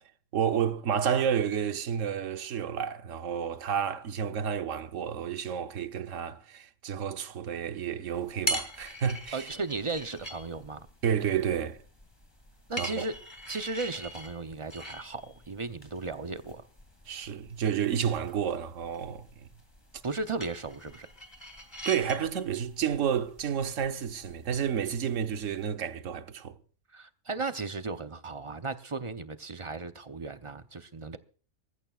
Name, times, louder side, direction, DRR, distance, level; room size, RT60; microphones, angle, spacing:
voice 1, 0.3-9.5 11.0-11.8 12.8-13.0 17.1-19.5 21.8-26.6, right 8 dB, 65° right, 1.2 m, -30 dB
sound 1, 8.1-25.6, equal, 15° left, 2.3 m, -42 dB
voice 2, 9.3-10.9 12.7-13.1 13.5-16.6 20.0-21.1 26.9-31.2, right 3 dB, 35° right, 0.5 m, -35 dB
25.5 x 15.0 x 2.4 m
omnidirectional pair, 1.5 m